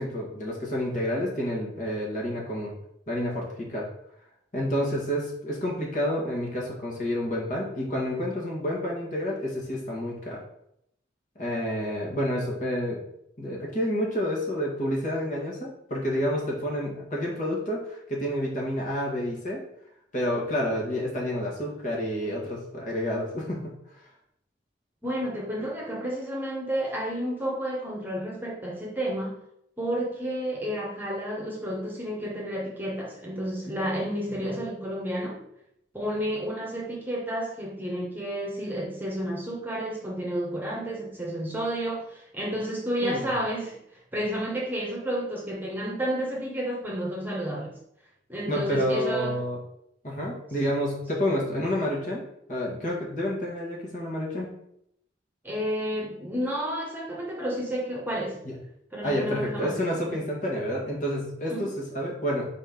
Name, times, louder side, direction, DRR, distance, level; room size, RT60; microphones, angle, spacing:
voice 1, 0.0-2.7 3.1-3.9 4.5-10.4 11.4-13.0 13.4-19.6 20.1-23.7 34.3-34.5 43.0-43.3 48.5-49.6 50.0-52.2 52.5-54.5 58.4-58.5 59.0-62.5, equal, 45° left, -2 dB, 1.9 m, -29 dB
voice 2, 25.0-29.3 29.8-35.4 35.9-43.8 44.1-47.8 48.3-49.4 55.4-58.4 58.9-59.8 60.1-60.2 61.5-61.7, equal, 10° right, -3 dB, 1.3 m, -31 dB
4.4 x 4.4 x 5.5 m, 0.75 s
head